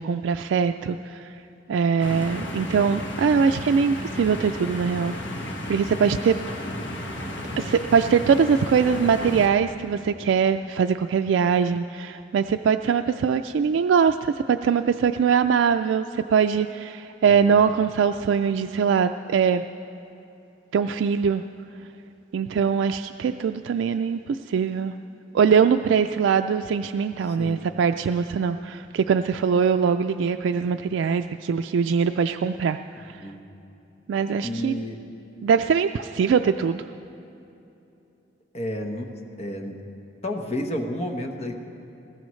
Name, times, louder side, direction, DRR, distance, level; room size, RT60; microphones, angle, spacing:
voice 1, 0.0-1.4 1.7-5.1 5.7-6.4 7.6-19.6 20.7-21.4 22.3-24.9 25.3-33.2 34.1-34.8 35.4-36.8, right 6 dB, 85° right, 8 dB, 0.3 m, -22 dB
sound 1, 2.0-9.5, left 1 dB, 70° left, 1.5 m, -33 dB
voice 2, 17.3-17.6 27.2-27.7 33.1-33.4 34.4-35.0 38.5-39.1 39.4-39.8 40.2-41.5, left 1 dB, 35° left, 3 dB, 1.1 m, -31 dB
20.5 x 17.0 x 3.2 m, 2.9 s
head